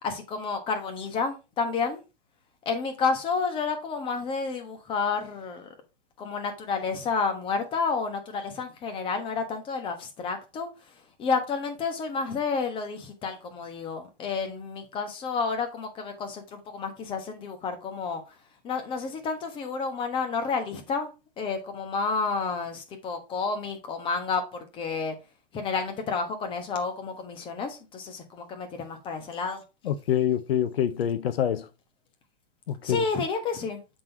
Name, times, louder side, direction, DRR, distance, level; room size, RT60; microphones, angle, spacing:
voice 1, 0.0-2.0 2.6-5.7 6.2-10.7 11.2-18.2 18.6-21.1 21.4-25.1 25.5-29.6 32.8-33.8, left 4 dB, 15° left, 1.2 m, -30 dB
voice 2, 29.8-31.7 32.7-33.0, left 10 dB, 75° left, 0.7 m, -26 dB
7.7 x 3.8 x 4.4 m
hypercardioid pair, 155°, 30 cm